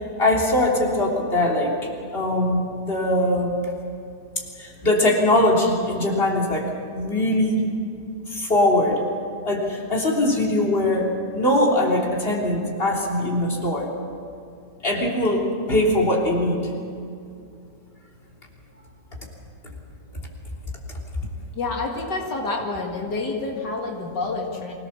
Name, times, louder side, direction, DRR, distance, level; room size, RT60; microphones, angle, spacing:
voice 1, 0.2-1.7 2.1-3.6 4.6-7.6 8.3-9.0 9.4-11.1 11.3-13.9 14.8-16.6, left 1 dB, 35° left, -1 dB, 3.5 m, -21 dB
voice 2, 21.5-24.7, left 3 dB, 85° left, 0 dB, 2.6 m, -28 dB
25.0 x 17.0 x 7.1 m, 2.4 s
omnidirectional pair, 1.8 m